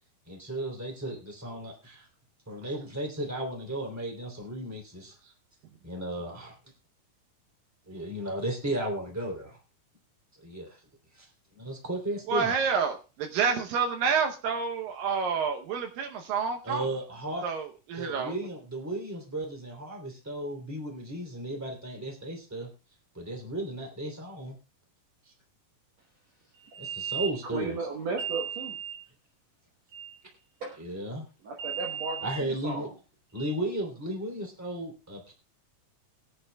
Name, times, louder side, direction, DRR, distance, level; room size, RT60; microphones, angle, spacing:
voice 1, 0.3-2.1 2.5-5.1 5.8-6.5 7.9-9.6 10.4-10.7 11.1-11.3 11.5-12.5 16.6-17.5 18.0-22.7 23.1-24.6 26.8-27.8 30.8-31.3 32.2-32.9 33.3-35.3, right 1 dB, 5° right, 1 dB, 2.4 m, -35 dB
voice 2, 12.3-16.8 17.4-18.3, right 6 dB, 75° right, 4 dB, 2.5 m, -28 dB
voice 3, 26.5-29.1 29.9-30.3 30.6-30.8 31.4-32.9 33.4-33.6, right 5 dB, 60° right, 1 dB, 2.1 m, -34 dB
21.5 x 9.8 x 2.3 m, 0.32 s
omnidirectional pair, 4.1 m